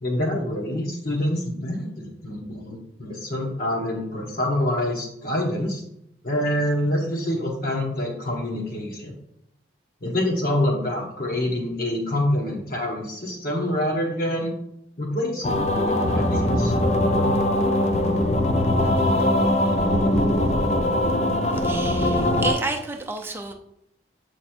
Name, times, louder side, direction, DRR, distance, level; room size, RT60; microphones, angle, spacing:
voice 1, 0.0-5.8 6.2-9.1 10.0-14.5 15.0-16.7 17.0-17.3, left 1 dB, 50° left, -2 dB, 1.2 m, -26 dB
sound 1, 15.4-22.5, left 1 dB, 35° left, 0.6 m, -21 dB
voice 2, 21.5-23.5, right 3 dB, 10° right, 2 dB, 0.6 m, -30 dB
7.8 x 3.2 x 4.4 m, 0.76 s
head